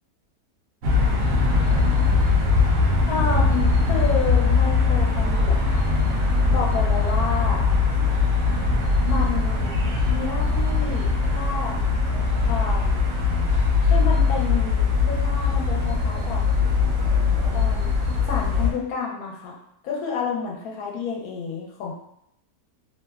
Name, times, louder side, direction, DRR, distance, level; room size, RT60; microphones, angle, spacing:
sound 1, 0.8-18.7, left 4 dB, 65° right, 0.7 m, -21 dB
voice 1, 3.1-5.8 6.5-7.6 9.0-9.7 10.1-11.8 12.4-13.1 13.8-16.4 17.5-18.0 18.3-19.5 19.8-21.9, left 5 dB, 70° left, -1 dB, 1.0 m, -30 dB
2.9 x 2.0 x 2.3 m, 0.76 s
omnidirectional pair, 1.7 m